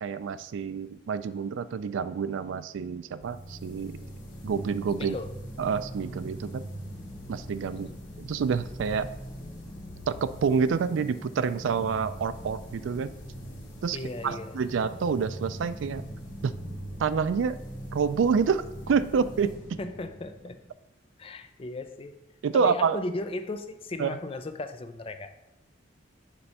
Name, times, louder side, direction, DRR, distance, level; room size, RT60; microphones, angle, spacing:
voice 1, 0.0-4.0 4.4-5.2 5.6-6.6 7.3-7.9 8.2-9.1 10.1-13.1 13.8-14.0 14.2-16.1 16.4-16.5 17.0-17.6 17.9-19.5 22.4-23.0 24.0-24.2, right 6 dB, 80° right, 14 dB, 0.3 m, -28 dB
sound 1, 3.2-20.7, equal, 75° left, 2.6 m, -41 dB
voice 2, 5.0-5.3 7.7-8.0 13.9-14.6 19.8-20.6 21.2-22.2 22.5-25.3, left 2 dB, 30° left, 8 dB, 0.4 m, -36 dB
7.0 x 3.3 x 5.3 m, 0.92 s
head